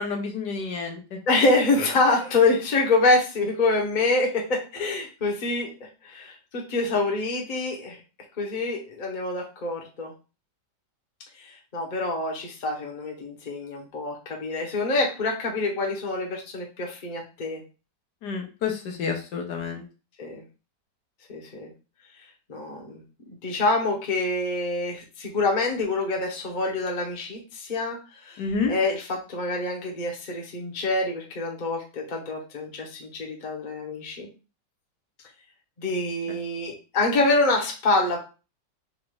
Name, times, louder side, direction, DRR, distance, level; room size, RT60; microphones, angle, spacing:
voice 1, 0.0-1.2 18.2-19.8 28.4-28.7, left 5 dB, 70° left, 2 dB, 1.4 m, -29 dB
voice 2, 1.3-5.7 6.0-8.0 8.4-10.1 11.4-17.6 20.2-20.4 21.3-21.7 22.5-23.0 23.4-34.3 35.8-38.2, left 2 dB, 35° left, 0 dB, 1.0 m, -26 dB
4.1 x 2.5 x 4.6 m, 0.32 s
omnidirectional pair, 1.9 m